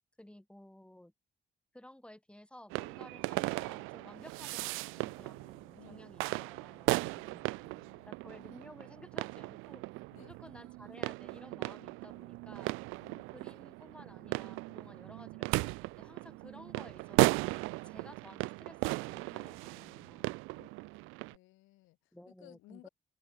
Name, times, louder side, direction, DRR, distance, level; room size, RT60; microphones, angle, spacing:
voice 1, 0.2-1.1 1.7-7.5 8.1-9.8 10.1-12.7 13.3-17.4 17.8-20.4 22.1-22.9, left 1 dB, 5° left, 2.3 m, -55 dB
sound 1, 2.7-21.3, right 24 dB, 75° right, 0.5 m, -36 dB
voice 2, 6.9-8.1 10.1-10.3 13.0-13.2 20.5-20.7 21.3-22.1 22.4-22.9, left 19 dB, 75° left, 1.7 m, -59 dB
hypercardioid pair, 45°, 21 cm